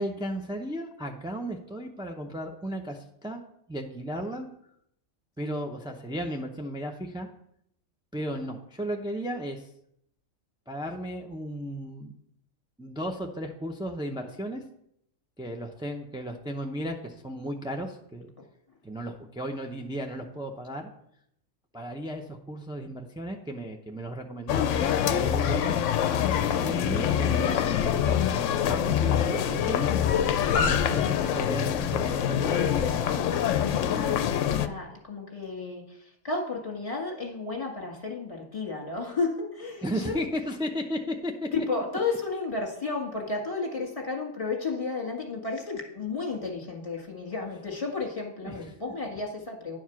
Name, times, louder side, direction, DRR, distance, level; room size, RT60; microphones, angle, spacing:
voice 1, 0.0-3.4 3.7-4.5 5.4-7.3 8.1-9.7 10.7-12.1 12.8-14.6 15.4-18.3 18.8-20.9 21.7-25.8 26.6-29.9 30.5-33.3 39.8-41.5 48.4-48.7, equal, 5° right, 1 dB, 0.3 m, -35 dB
sound 1, 24.5-34.7, left 9 dB, 70° left, 0.9 m, -25 dB
voice 2, 33.6-40.2 41.5-49.8, left 3 dB, 25° left, 1 dB, 1.8 m, -33 dB
10.5 x 4.7 x 5.8 m, 0.73 s
omnidirectional pair, 1.4 m